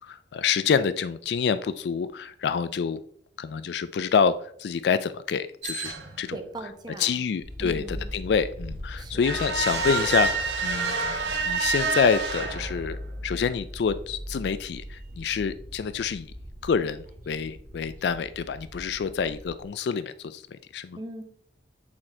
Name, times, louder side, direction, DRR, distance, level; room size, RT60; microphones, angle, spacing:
voice 1, 0.0-3.0 3.4-6.4 7.0-10.3 10.6-16.3 16.6-21.0, left 6 dB, 65° left, 14 dB, 0.3 m, -27 dB
sound 1, 5.6-6.3 9.2-13.1, right 4 dB, 80° right, 1.7 m, -28 dB
voice 2, 6.3-7.3 7.6-8.1 8.9-9.2 20.9-21.2, right 1 dB, 25° right, 4 dB, 1.0 m, -39 dB
sound 2, 7.4-19.6, equal, 50° right, 1.5 m, -40 dB
8.6 x 4.3 x 4.4 m, 0.63 s
head